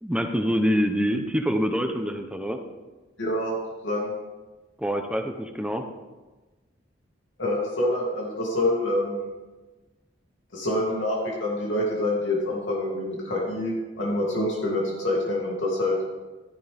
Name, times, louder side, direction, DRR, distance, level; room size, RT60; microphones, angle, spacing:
voice 1, 0.0-2.6 4.8-5.8, equal, 5° right, 5 dB, 0.7 m, -25 dB
voice 2, 3.2-3.5 3.8-4.1 7.4-9.2 10.5-16.0, left 1 dB, 85° left, -3 dB, 2.8 m, -26 dB
13.0 x 11.0 x 3.5 m, 1.2 s
head